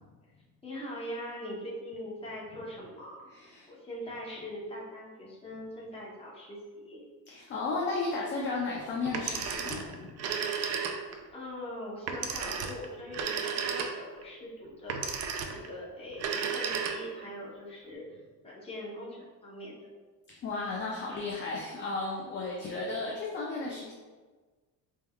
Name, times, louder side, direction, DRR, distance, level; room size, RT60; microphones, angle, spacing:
voice 1, 0.6-3.2 3.7-7.0 11.3-18.0 18.4-19.8, equal, 15° left, -4 dB, 0.8 m, -42 dB
voice 2, 3.3-3.7 7.3-10.1 20.4-23.9, left 3 dB, 30° left, -3 dB, 0.5 m, -34 dB
Telephone, 9.1-11.3 12.1-14.2 14.9-15.7 16.1-17.3, right 6 dB, 45° right, 0.4 m, -33 dB
4.3 x 3.5 x 2.2 m, 1.4 s
cardioid pair, 150°, 37 cm